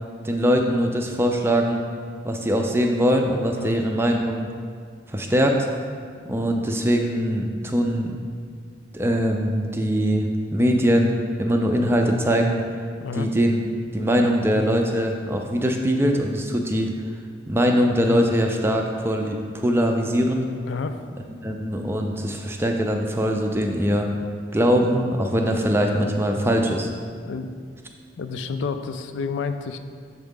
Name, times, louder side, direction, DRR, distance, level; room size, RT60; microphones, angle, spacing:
voice 1, 0.2-1.8 2.2-4.5 5.1-5.7 6.3-8.1 8.9-12.6 13.1-13.6 13.9-16.9 17.5-20.5 21.4-24.1 24.5-26.9, equal, 10° right, 2 dB, 0.3 m, -22 dB
voice 2, 20.7-21.0 27.3-27.5 28.2-29.8, left 5 dB, 80° left, 8 dB, 0.3 m, -30 dB
7.1 x 3.8 x 3.6 m, 2.1 s
head